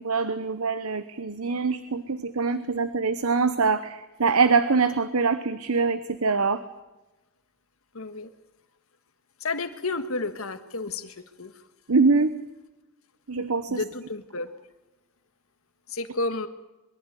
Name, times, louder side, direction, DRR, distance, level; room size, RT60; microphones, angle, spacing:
voice 1, 0.0-6.6 11.9-12.3 13.3-13.8, right 4 dB, 75° right, 12 dB, 0.9 m, -24 dB
voice 2, 7.9-8.3 9.4-11.5 13.7-14.5 15.9-16.5, left 3 dB, 70° left, 9 dB, 1.6 m, -31 dB
22.5 x 14.0 x 8.3 m, 1.1 s
head